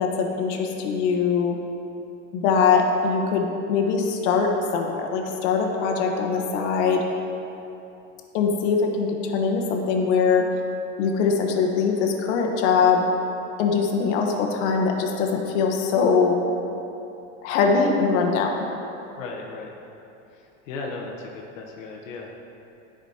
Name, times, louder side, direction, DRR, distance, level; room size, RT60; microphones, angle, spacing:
voice 1, 0.0-1.6 2.3-7.0 8.3-10.5 11.0-13.0 13.6-16.4 17.4-18.6, left 5 dB, 65° left, 2 dB, 1.1 m, -22 dB
voice 2, 19.1-19.7 20.3-22.4, left 3 dB, 85° left, -1 dB, 1.0 m, -36 dB
10.0 x 5.0 x 4.2 m, 2.9 s
supercardioid pair, 135°, 38 cm